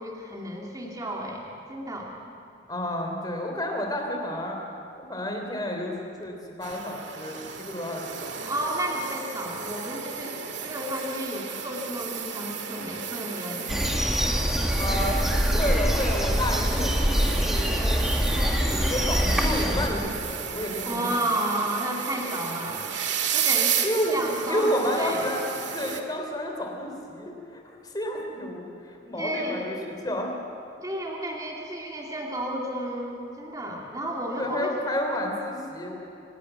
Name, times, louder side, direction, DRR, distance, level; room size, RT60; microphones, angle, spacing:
voice 1, 0.0-2.2 8.5-14.0 14.9-15.0 20.9-22.9 23.3-25.3 29.2-29.6 30.8-34.7, right 1 dB, 20° right, -1 dB, 2.3 m, -32 dB
voice 2, 2.7-4.6 5.1-8.4 14.8-15.2 15.5-21.1 23.8-24.2 24.5-30.3 34.4-35.9, equal, 20° left, 2 dB, 3.3 m, -31 dB
sound 1, 6.6-26.0, right 8 dB, 85° right, 1.8 m, -33 dB
sound 2, 13.7-19.9, equal, ahead, 1.7 m, -24 dB
26.0 x 12.0 x 9.2 m, 2.7 s
head